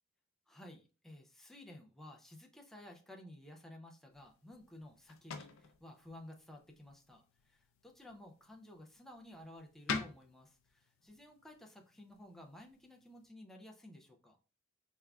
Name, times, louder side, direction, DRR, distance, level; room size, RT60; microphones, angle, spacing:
voice 1, 0.5-14.4, left 1 dB, ahead, 0 dB, 0.4 m, -54 dB
sound 1, 4.1-13.3, left 5 dB, 70° left, 0.5 m, -48 dB
3.5 x 3.4 x 2.3 m, 0.34 s
head